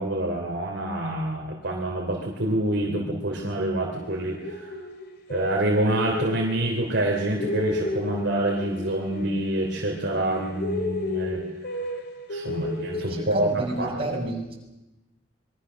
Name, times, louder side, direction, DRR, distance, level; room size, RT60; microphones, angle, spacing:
voice 1, 0.0-4.7 5.3-11.4 12.3-14.2, right 1 dB, 60° right, 0 dB, 3.1 m, -27 dB
sound 1, 4.0-6.7 7.0-10.0 10.2-13.8, left 2 dB, 55° left, 2.7 m, -33 dB
voice 2, 13.0-14.5, right 1 dB, 30° right, -2 dB, 6.7 m, -30 dB
26.0 x 22.5 x 6.4 m, 0.99 s
head